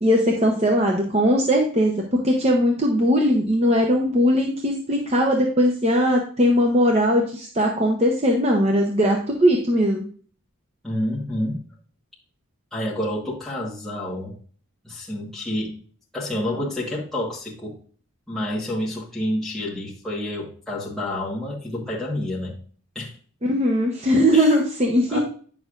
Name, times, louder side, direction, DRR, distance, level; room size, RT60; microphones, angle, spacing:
voice 1, 0.0-10.0 23.4-25.2, equal, 30° right, 1 dB, 0.8 m, -20 dB
voice 2, 10.8-11.6 12.7-14.4 14.8-15.8 16.1-17.8 18.3-22.6 22.9-23.1 24.3-24.5 25.1-25.2, left 1 dB, ahead, -7 dB, 1.4 m, -28 dB
9.2 x 6.3 x 2.5 m, 0.43 s
head